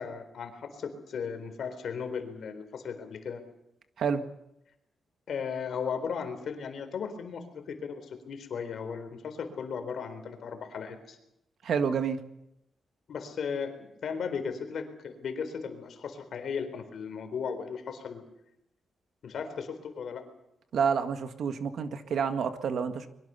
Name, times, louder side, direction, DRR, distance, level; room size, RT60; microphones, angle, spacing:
voice 1, 0.0-3.4 5.3-11.2 13.1-18.2 19.2-20.2, left 6 dB, 60° left, 8 dB, 4.0 m, -36 dB
voice 2, 11.6-12.2 20.7-23.1, right 6 dB, 60° right, 8 dB, 1.9 m, -29 dB
24.0 x 22.5 x 7.0 m, 0.83 s
wide cardioid pair, 180°, 0 cm